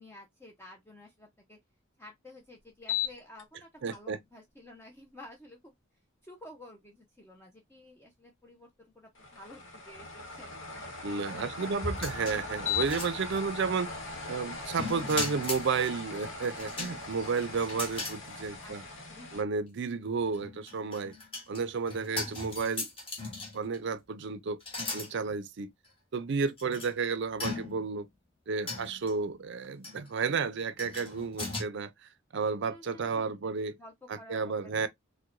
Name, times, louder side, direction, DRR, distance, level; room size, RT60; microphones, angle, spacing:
voice 1, 0.0-1.6 2.0-5.7 6.2-11.0 11.3-12.0 18.6-18.8 19.1-19.4 22.0-22.5 32.6-33.4 33.8-34.9, left 1 dB, 10° left, 0.6 m, -52 dB
sound 1, 2.8-3.4 3.9-4.0 9.2-19.4, left 5 dB, 65° left, 1.2 m, -39 dB
voice 2, 3.8-4.2 11.0-13.9 14.3-18.8 19.3-21.1 21.5-22.9 23.5-24.6 24.9-25.7 26.1-28.1 28.5-31.9 32.3-33.8 34.1-34.9, right 5 dB, 60° right, 0.5 m, -32 dB
sound 2, 11.8-13.6 14.7-15.7 16.6-18.2 18.6-18.7 20.3-23.8 24.6-25.1 25.8-25.9 26.6-26.9 27.4-28.0 28.7-29.1 29.8-30.1 30.8-31.6, left 2 dB, 25° left, 1.3 m, -38 dB
4.5 x 2.2 x 2.5 m
head